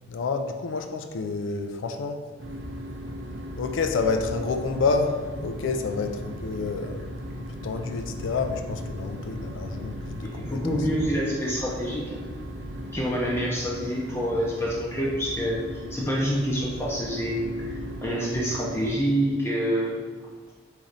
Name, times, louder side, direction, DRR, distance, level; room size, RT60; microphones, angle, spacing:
voice 1, 0.1-2.2 3.6-7.1 7.6-10.9, left 4 dB, 80° left, 6 dB, 0.4 m, -29 dB
sound 1, 2.4-18.9, equal, 70° right, 0.6 m, -37 dB
voice 2, 10.2-12.2 12.9-20.0, equal, 15° left, -5 dB, 0.5 m, -27 dB
4.0 x 3.2 x 3.9 m, 1.5 s
head